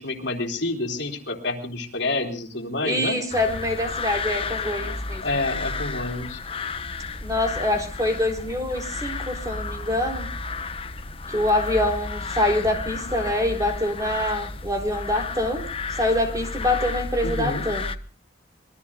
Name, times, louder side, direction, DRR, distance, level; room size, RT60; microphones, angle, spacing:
voice 1, 0.0-3.2 4.4-4.5 5.2-6.4 17.2-17.6, left 2 dB, 70° left, 4 dB, 3.6 m, -28 dB
voice 2, 2.8-5.2 7.2-10.3 11.3-15.6 15.9-17.8, left 1 dB, 20° right, 4 dB, 3.8 m, -25 dB
sound 1, 3.3-17.9, left 3 dB, 30° left, 1.0 m, -32 dB
26.0 x 22.0 x 2.4 m, 0.38 s
head